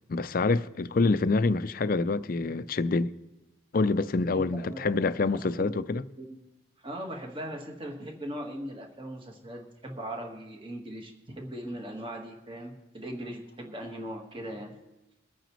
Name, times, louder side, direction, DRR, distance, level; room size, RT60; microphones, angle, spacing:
voice 1, 0.1-3.1 3.7-6.0, left 3 dB, 45° left, 0.4 m, -26 dB
voice 2, 4.3-5.0 5.4-5.8 6.2-6.4 6.8-14.7, equal, 25° right, 1.5 m, -39 dB
23.5 x 9.1 x 3.1 m
head